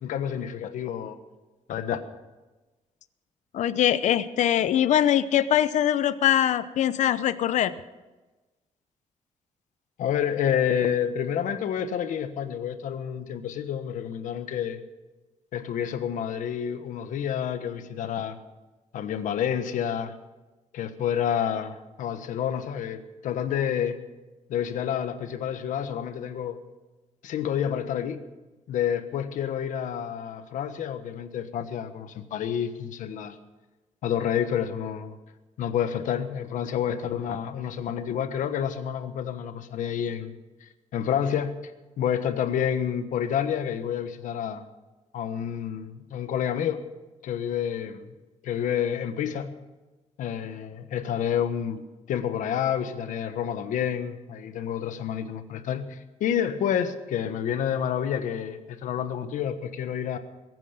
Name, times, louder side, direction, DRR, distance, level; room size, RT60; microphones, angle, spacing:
voice 1, 0.0-1.2 1.7-2.0 10.0-14.8 15.5-18.4 18.9-20.1 20.7-24.0 24.5-26.6 27.2-28.2 28.7-33.4 34.0-35.2 35.6-40.3 40.6-41.6 42.0-44.6 45.1-46.8 47.2-48.1 48.4-49.5 50.2-51.8 52.1-60.2, left 9 dB, 85° left, 9 dB, 1.3 m, -29 dB
voice 2, 3.5-7.7, left 10 dB, 70° left, 13 dB, 0.7 m, -22 dB
21.5 x 9.4 x 6.9 m, 1.2 s
cardioid pair, 150°, 13 cm